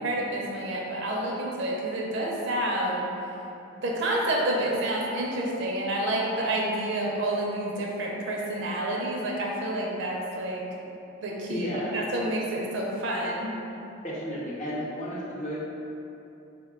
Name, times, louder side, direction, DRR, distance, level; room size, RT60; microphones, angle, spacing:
voice 1, 0.0-3.1 3.8-10.6 11.2-13.5, right 1 dB, 65° right, -2 dB, 0.5 m, -29 dB
voice 2, 11.5-11.9 14.0-15.6, equal, 40° left, -7 dB, 0.8 m, -33 dB
3.6 x 2.2 x 3.6 m, 2.9 s
head